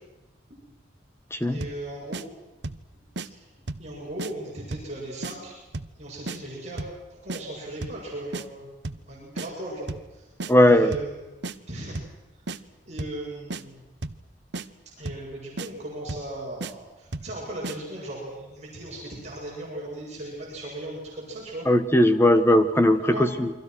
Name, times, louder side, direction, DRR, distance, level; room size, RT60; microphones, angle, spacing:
voice 1, 1.5-2.2 3.3-3.5 3.8-5.5 6.0-8.6 9.1-10.3 10.7-11.2 11.7-11.9 12.9-13.8 15.0-21.7 23.1-23.3, right 1 dB, 35° right, -4 dB, 7.9 m, -37 dB
sound 1, 1.6-1.8 2.1-2.3 2.6-2.9 3.2-3.3 3.7-3.9 4.2-4.3 4.7-4.9 5.2-5.4 5.7-6.0 6.3-6.4 6.8-7.0 7.3-7.4 7.8-8.0 8.3-8.5 8.8-9.1 9.4-9.5 9.9-10.1 10.4-10.5 10.9-11.1 11.4-11.6 12.0-12.2 12.5-12.6 13.0-13.2 13.5-13.6 14.0-14.2 14.5-14.7 15.1-15.3 15.6-15.7 16.1-16.3 16.6-16.7 17.1-17.3 17.6-17.8, right 2 dB, 65° right, 1.1 m, -33 dB
voice 2, 10.5-10.9 21.7-23.5, left 1 dB, 15° left, 10 dB, 1.4 m, -18 dB
29.0 x 24.0 x 6.4 m, 1.1 s
head